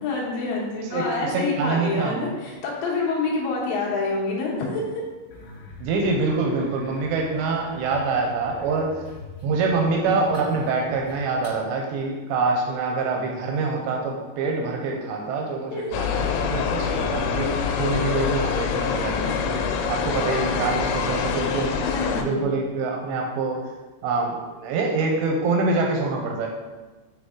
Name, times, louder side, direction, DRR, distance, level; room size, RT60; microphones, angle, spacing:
voice 1, 0.0-4.8 15.7-15.9 21.8-22.5, left 3 dB, 75° left, -3 dB, 3.3 m, -27 dB
voice 2, 0.9-2.3 5.8-9.0 9.4-19.6 19.9-21.8 22.2-23.7 24.0-26.5, right 3 dB, 85° right, 1 dB, 2.6 m, -25 dB
sound 1, 5.3-11.6, left 2 dB, 50° left, 3.0 m, -42 dB
sound 2, 15.9-22.2, left 6 dB, 90° left, 3.2 m, -25 dB
8.7 x 3.3 x 3.7 m, 1.2 s
omnidirectional pair, 5.6 m